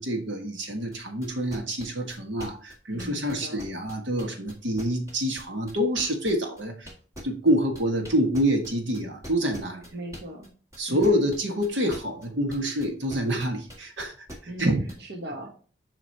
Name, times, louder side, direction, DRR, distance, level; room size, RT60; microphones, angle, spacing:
voice 1, 0.0-6.9 7.2-9.9 10.8-14.1 14.6-14.8, equal, 75° right, 4 dB, 1.5 m, -27 dB
sound 1, 0.9-14.9, equal, 15° right, 1.7 m, -42 dB
voice 2, 2.9-3.7 9.9-10.5 10.9-11.2 14.4-15.5, right 1 dB, 60° right, 1 dB, 1.2 m, -38 dB
7.8 x 4.9 x 2.8 m, 0.40 s
head